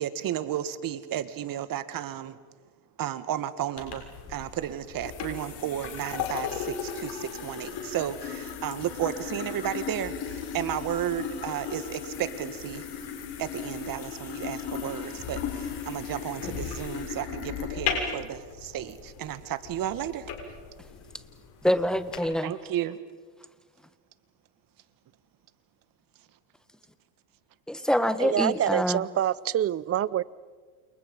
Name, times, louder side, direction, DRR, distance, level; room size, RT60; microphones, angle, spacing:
voice 1, 0.0-2.4 3.0-12.9 13.4-20.3 22.4-23.0, right 11 dB, 45° right, 1.9 m, -33 dB
sound 1, 3.8-22.2, left 7 dB, 55° left, 6.7 m, -36 dB
voice 2, 21.6-22.5 27.7-29.0, equal, ahead, 1.6 m, -25 dB
voice 3, 28.2-30.2, right 11 dB, 30° right, 0.7 m, -26 dB
29.5 x 28.5 x 5.5 m
supercardioid pair, 105°, 47 cm